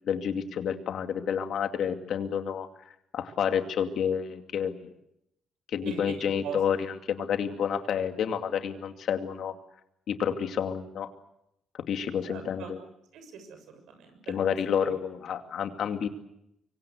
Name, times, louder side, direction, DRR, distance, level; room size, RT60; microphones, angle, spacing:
voice 1, 0.0-2.7 3.1-4.9 5.7-9.5 10.1-11.1 11.7-12.8 14.3-16.1, left 8 dB, 65° left, 7 dB, 2.5 m, -29 dB
voice 2, 5.8-6.6 12.3-12.7 13.1-14.3 14.8-14.9, right 7 dB, 85° right, 7 dB, 6.7 m, -41 dB
25.0 x 24.5 x 7.9 m, 0.80 s
cardioid pair, 90°, 0 cm